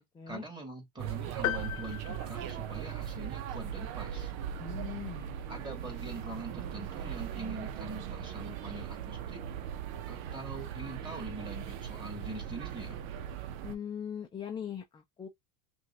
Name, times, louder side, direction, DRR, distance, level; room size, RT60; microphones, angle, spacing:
voice 1, 0.3-4.3 5.5-9.4 10.1-13.0, right 2 dB, 10° right, 2.4 m, -43 dB
sound 1, 1.0-13.8, right 9 dB, 70° right, 0.9 m, -39 dB
sound 2, 1.4-3.2, left 14 dB, 80° left, 0.9 m, -37 dB
voice 2, 4.6-5.5 13.6-15.3, left 8 dB, 10° left, 0.5 m, -40 dB
5.8 x 2.5 x 2.9 m
supercardioid pair, 130°, 43 cm